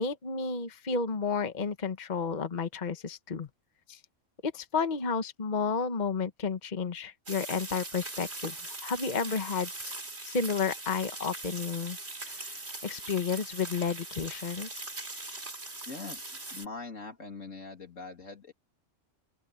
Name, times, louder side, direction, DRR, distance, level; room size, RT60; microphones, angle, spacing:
voice 1, 0.0-3.5 3.9-4.0 4.4-8.5 8.8-9.9 10.3-12.0 12.2-12.4 12.8-14.8, left 5 dB, 40° left, 1.2 m, -31 dB
sound 1, 7.3-16.7, right 2 dB, 55° right, 4.1 m, -41 dB
voice 2, 15.9-18.5, left 4 dB, 90° left, 3.5 m, -42 dB
open air
omnidirectional pair, 1.3 m